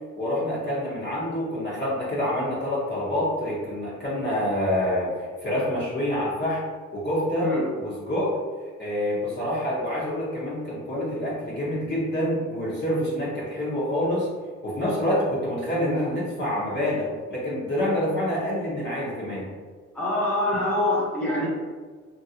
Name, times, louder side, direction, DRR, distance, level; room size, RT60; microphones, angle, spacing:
voice 1, 0.2-6.6 6.9-8.4 8.8-14.3 14.6-19.5, left 1 dB, 35° left, -7 dB, 1.1 m, -27 dB
voice 2, 19.9-21.5, left 1 dB, 5° left, -7 dB, 1.1 m, -24 dB
3.0 x 2.7 x 2.8 m, 1.5 s
cardioid pair, 90°, 30 cm